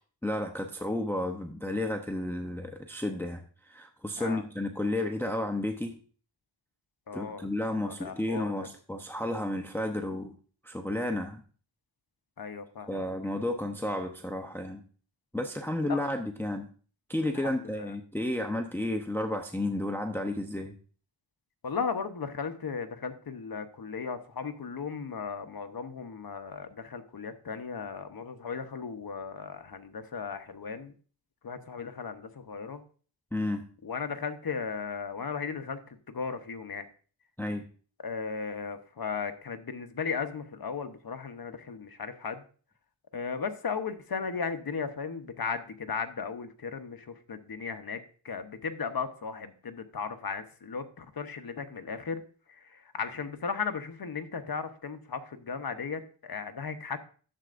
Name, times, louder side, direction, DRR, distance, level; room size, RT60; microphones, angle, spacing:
voice 1, 0.2-5.9 7.1-10.3 10.6-11.4 12.9-14.8 15.3-16.7 17.1-20.8 33.3-33.6 37.4-37.6, left 1 dB, 5° left, 4 dB, 0.8 m, -32 dB
voice 2, 7.1-8.7 12.4-13.1 15.9-16.0 17.3-17.9 21.6-30.9 31.4-32.8 33.8-36.9 38.0-42.4 43.1-52.2 52.5-57.0, left 5 dB, 50° left, 8 dB, 1.0 m, -36 dB
11.5 x 7.6 x 2.5 m, 0.41 s
cardioid pair, 70°, 47 cm